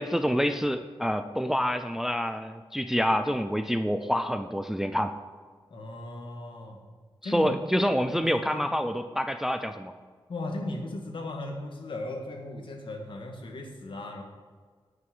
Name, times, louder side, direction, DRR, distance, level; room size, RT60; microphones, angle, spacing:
voice 1, 0.0-5.1 7.2-9.9, equal, 5° right, 8 dB, 0.4 m, -27 dB
voice 2, 5.7-6.8 7.2-8.7 10.3-14.2, left 2 dB, 60° left, 2 dB, 1.8 m, -37 dB
9.4 x 6.2 x 7.8 m, 1.5 s
wide cardioid pair, 170°, 9 cm